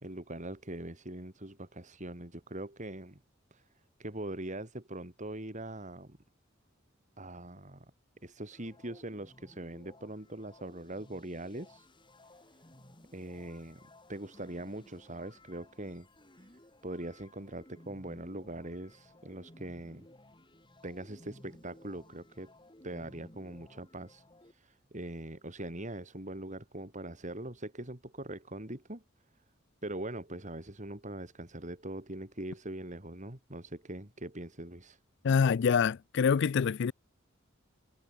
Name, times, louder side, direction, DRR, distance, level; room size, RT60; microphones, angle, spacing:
voice 1, 0.0-3.2 3.5-3.7 4.0-6.2 7.2-7.9 8.2-11.9 13.1-16.1 16.4-16.5 16.8-20.1 20.8-22.5 22.8-24.2 24.5-29.0 29.8-35.0, right 1 dB, 35° right, 3.8 m, -42 dB
sound 1, 8.5-24.5, left 1 dB, 25° left, 4.8 m, -58 dB
voice 2, 35.2-36.9, left 6 dB, 60° left, 0.4 m, -26 dB
head